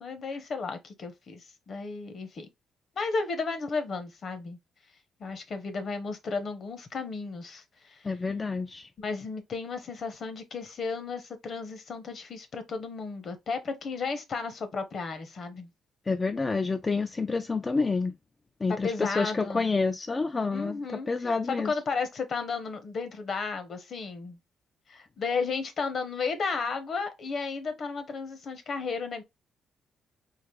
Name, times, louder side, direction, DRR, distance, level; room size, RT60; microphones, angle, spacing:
voice 1, 0.0-2.5 3.0-4.6 5.2-8.1 9.0-15.7 18.8-19.7 20.5-21.1 21.5-24.4 24.9-29.2, left 4 dB, 55° left, 0.8 m, -33 dB
voice 2, 8.0-8.9 16.1-18.1 18.6-21.7, left 4 dB, 25° left, 0.3 m, -28 dB
3.8 x 2.5 x 3.1 m
cardioid pair, 90°, 0 cm